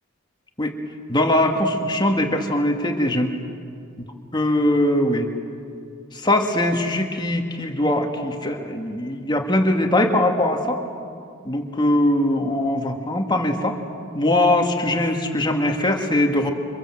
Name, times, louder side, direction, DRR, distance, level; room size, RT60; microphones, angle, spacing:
voice 1, 1.1-3.3 4.3-5.3 6.1-10.8 11.4-13.8 14.1-16.5, left 1 dB, 20° left, 3 dB, 2.2 m, -21 dB
29.0 x 25.5 x 7.8 m, 2.4 s
head